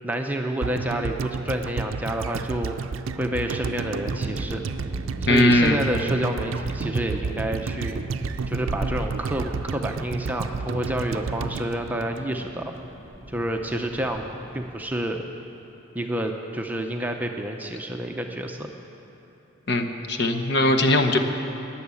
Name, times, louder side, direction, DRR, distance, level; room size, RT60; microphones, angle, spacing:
voice 1, 0.0-2.8 3.1-4.6 5.2-12.7 13.3-14.2 14.5-15.3 15.9-18.7, right 1 dB, 10° right, 3 dB, 0.6 m, -29 dB
sound 1, 0.6-12.8 13.1-13.2, right 4 dB, 70° right, 0.5 m, -31 dB
sound 2, 4.0-14.9, right 1 dB, 20° left, 4.5 m, -39 dB
voice 2, 5.3-5.8 19.7-21.2, left 1 dB, 50° left, 5 dB, 0.9 m, -20 dB
19.5 x 7.1 x 8.4 m, 2.9 s
head